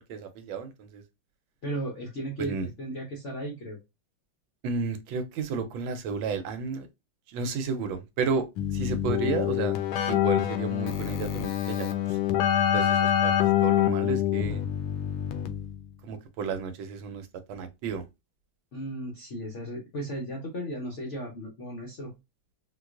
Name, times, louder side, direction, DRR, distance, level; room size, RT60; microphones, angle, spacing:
voice 1, 0.1-1.0 2.4-2.7 4.6-6.9 7.3-9.8 10.1-12.2 12.7-14.6 16.0-18.0, right 5 dB, 80° right, 1.4 m, -32 dB
voice 2, 1.6-3.8 18.7-22.1, right 1 dB, 65° left, 0.7 m, -35 dB
Keyboard (musical), 8.6-15.9, left 10 dB, 85° left, 1.3 m, -26 dB
4.2 x 2.2 x 2.3 m
omnidirectional pair, 2.1 m